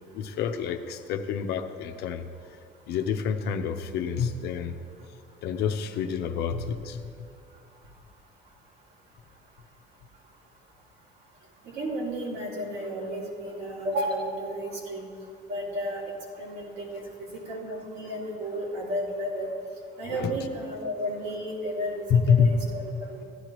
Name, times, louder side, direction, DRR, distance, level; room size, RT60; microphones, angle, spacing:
voice 1, 0.1-2.3 2.9-4.8 5.4-7.0 20.1-20.4 22.1-22.6, left 6 dB, 80° left, 7 dB, 0.7 m, -27 dB
voice 2, 11.6-15.1 15.5-19.5 20.0-23.2, equal, 75° right, -5 dB, 2.9 m, -33 dB
15.5 x 11.0 x 3.1 m, 2.5 s
cardioid pair, 110°, 17 cm